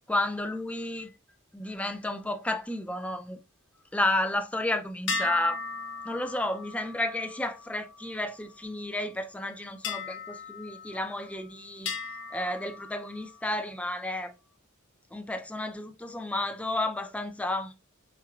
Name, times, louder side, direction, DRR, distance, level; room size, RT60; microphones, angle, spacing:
voice 1, 0.1-1.1 1.5-3.4 3.9-5.6 6.0-11.9 12.3-14.3 15.1-17.7, left 1 dB, 5° left, 0.4 m, -31 dB
sound 1, 5.1-8.8 9.8-11.4 11.9-13.5, left 4 dB, 60° left, 0.8 m, -38 dB
4.5 x 3.9 x 2.3 m
head